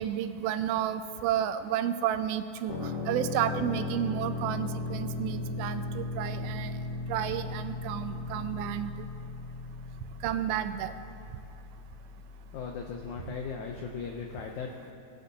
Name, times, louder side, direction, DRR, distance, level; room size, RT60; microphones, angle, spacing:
voice 1, 0.0-6.7 7.1-9.1 10.2-10.9, right 10 dB, 85° right, 10 dB, 2.4 m, -31 dB
sound 1, 2.7-14.3, left 3 dB, 60° left, 1.0 m, -37 dB
voice 2, 12.5-14.7, left 5 dB, 90° left, 1 dB, 1.7 m, -37 dB
18.5 x 9.5 x 2.8 m, 2.9 s
omnidirectional pair, 4.3 m